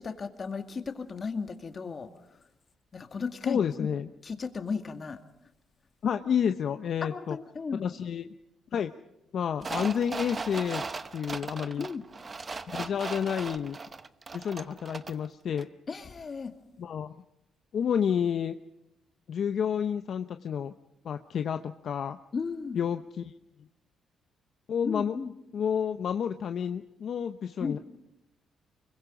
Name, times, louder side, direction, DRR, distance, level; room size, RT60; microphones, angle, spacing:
voice 1, 0.0-2.4 2.9-3.9 4.2-5.2 7.0-7.8 11.8-12.0 15.9-16.5 22.3-22.8 24.8-25.3 27.6-27.8, left 5 dB, 40° left, 7 dB, 2.1 m, -35 dB
voice 2, 3.5-4.1 6.0-7.4 7.8-8.3 8.7-8.9 9.3-10.8 11.1-11.9 12.7-13.8 14.3-15.7 16.8-17.1 17.7-18.6 19.3-20.7 21.0-22.2 22.7-23.3 24.7-25.2 25.5-27.8, left 8 dB, 60° left, 8 dB, 0.8 m, -30 dB
sound 1, 9.6-15.3 15.6-15.7, right 4 dB, 30° right, 0.9 m, -38 dB
25.0 x 23.0 x 5.1 m, 0.91 s
cardioid pair, 90°, 0 cm